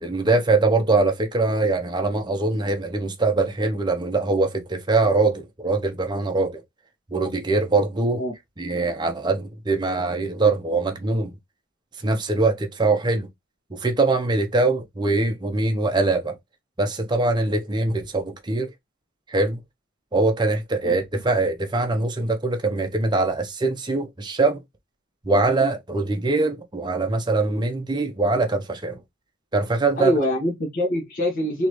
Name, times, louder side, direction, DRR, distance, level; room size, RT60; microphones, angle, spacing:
voice 1, 0.0-6.6 7.1-8.2 8.6-11.3 12.0-13.3 13.7-16.4 16.8-18.7 19.3-19.6 20.1-24.6 25.2-29.0 29.5-30.1, right 3 dB, 20° right, 0.7 m, -22 dB
voice 2, 30.0-31.7, equal, 45° left, 1.4 m, -24 dB
3.9 x 3.0 x 3.0 m
head